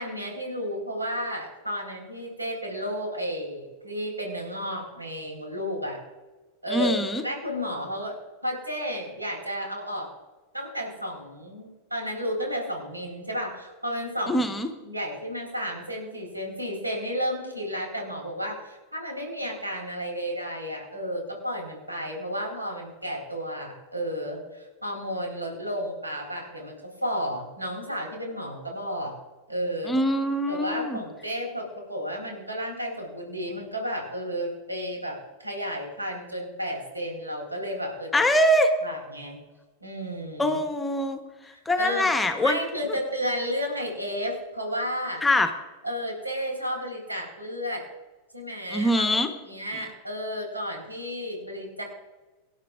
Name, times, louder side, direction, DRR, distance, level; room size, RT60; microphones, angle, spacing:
voice 1, 0.0-6.0 6.6-7.0 7.2-8.2 8.4-10.1 10.5-14.4 14.8-26.7 27.0-29.2 29.5-29.9 30.5-38.2 38.8-39.4 39.8-40.6 41.8-42.1 42.4-45.2 45.8-47.8 48.3-49.1 49.4-51.8, equal, 85° right, 1 dB, 4.2 m, -32 dB
voice 2, 6.7-7.2 14.3-14.7 29.9-31.0 38.1-38.7 40.4-41.2 41.7-42.6 45.2-45.5 48.7-49.3 49.7-49.9, left 1 dB, 10° left, 8 dB, 1.1 m, -23 dB
24.5 x 10.5 x 2.4 m, 1.2 s
figure-of-eight pair, 90°, 0 cm